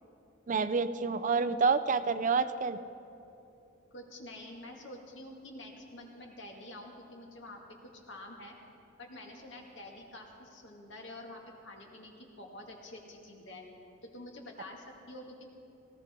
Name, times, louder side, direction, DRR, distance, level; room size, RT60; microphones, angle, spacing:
voice 1, 0.5-2.8, right 4 dB, 40° right, 12 dB, 0.4 m, -28 dB
voice 2, 3.9-8.5 9.0-12.1 12.4-13.6 14.0-15.4, left 1 dB, 65° left, 0 dB, 2.2 m, -48 dB
19.5 x 17.5 x 3.8 m, 2.8 s
head